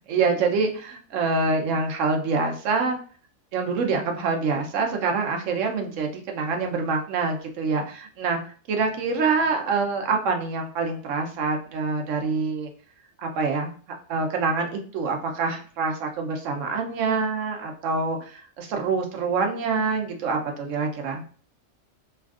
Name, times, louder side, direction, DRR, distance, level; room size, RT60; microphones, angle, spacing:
voice 1, 0.1-3.0 3.5-8.4 8.7-12.7 13.2-13.7 14.1-21.2, right 4 dB, 75° right, 3 dB, 1.0 m, -26 dB
3.3 x 2.4 x 2.4 m, 0.42 s
omnidirectional pair, 1.4 m